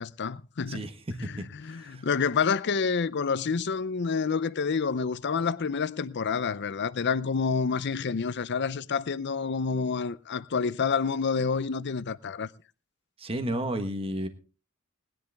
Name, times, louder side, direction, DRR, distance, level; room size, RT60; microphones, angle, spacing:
voice 1, 0.0-0.9 1.2-12.5, left 5 dB, 55° left, 0.6 m, -28 dB
voice 2, 0.7-2.1 13.2-14.3, right 1 dB, 25° right, 1.4 m, -33 dB
20.0 x 10.5 x 3.5 m
head